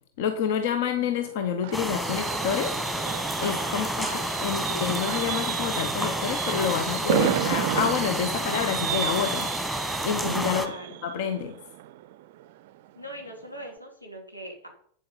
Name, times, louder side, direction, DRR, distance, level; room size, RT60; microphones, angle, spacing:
voice 1, 0.2-2.8 3.4-4.1 4.4-10.7 11.0-11.5, left 8 dB, 50° left, 8 dB, 0.8 m, -28 dB
Fireworks, 1.0-12.7 13.0-13.3 13.6-13.7, right 15 dB, 50° right, 0.4 m, -32 dB
sound 1, 1.7-10.7, equal, ahead, 1.4 m, -30 dB
voice 2, 3.7-4.8 10.5-11.0 12.9-14.7, right 1 dB, 85° left, 1 dB, 2.9 m, -42 dB
8.6 x 7.7 x 5.4 m, 0.63 s
figure-of-eight pair, 90°, 0 cm